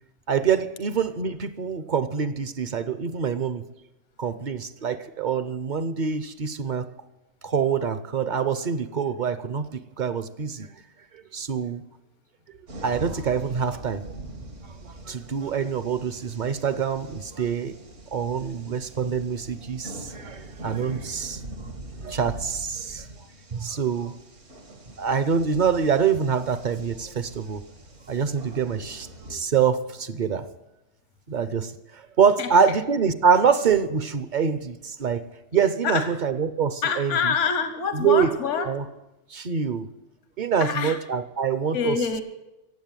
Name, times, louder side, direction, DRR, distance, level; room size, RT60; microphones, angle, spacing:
voice 1, 0.3-3.6 4.2-6.9 7.4-10.7 11.3-11.8 12.8-14.1 14.8-17.8 18.1-21.4 22.0-23.1 23.5-24.2 25.0-27.6 28.1-30.4 31.3-35.3 35.5-37.3 37.9-38.3 38.6-38.8 39.3-39.9 40.4-42.0, right 6 dB, 50° right, 13 dB, 0.7 m, -25 dB
sound 1, 12.7-29.4, right 1 dB, 80° right, 2.2 m, -42 dB
voice 2, 36.8-38.7 40.6-41.0 41.7-42.2, left 6 dB, 80° left, 9 dB, 1.2 m, -26 dB
15.5 x 7.8 x 9.0 m, 1.0 s
omnidirectional pair, 1.3 m